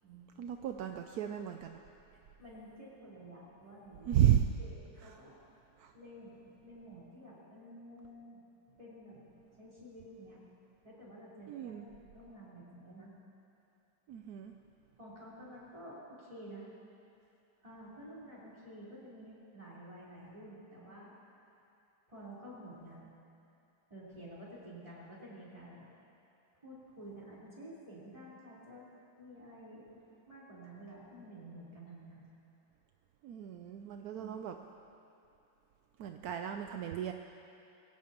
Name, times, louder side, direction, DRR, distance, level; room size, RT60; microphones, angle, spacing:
voice 1, 0.4-1.8 4.1-4.5 5.0-5.1 5.8-5.9 11.5-11.9 14.1-14.5 33.2-34.5 36.0-37.1, right 11 dB, 70° right, 5 dB, 0.9 m, -33 dB
voice 2, 2.4-4.1 4.6-5.4 5.9-8.4 8.8-9.2 9.6-10.4 10.8-13.1 15.0-16.7 17.6-21.2 22.1-23.1 23.9-25.9 26.6-28.8 29.2-32.3 34.1-34.5, right 1 dB, 15° right, -8 dB, 4.3 m, -51 dB
22.5 x 17.0 x 3.0 m, 2.7 s
omnidirectional pair, 2.1 m